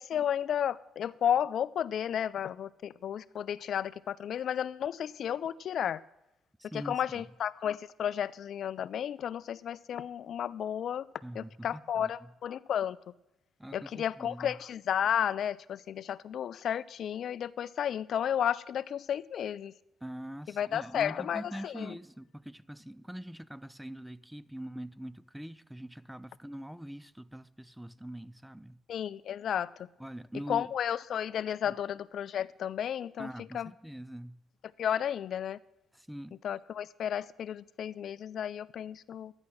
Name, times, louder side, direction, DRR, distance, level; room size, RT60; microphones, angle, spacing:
voice 1, 0.0-6.0 6.7-11.1 11.4-13.0 13.7-19.7 20.6-21.9 28.9-29.9 30.5-33.3 33.5-33.7 34.8-35.6 36.4-39.3, left 9 dB, 65° left, 0.4 m, -33 dB
voice 2, 6.6-7.3 11.2-12.3 13.6-14.6 20.0-28.8 30.0-30.7 31.7-31.8 33.2-34.4 35.9-36.4, equal, 5° right, 0.4 m, -43 dB
11.0 x 9.7 x 6.2 m
cardioid pair, 90°, 0 cm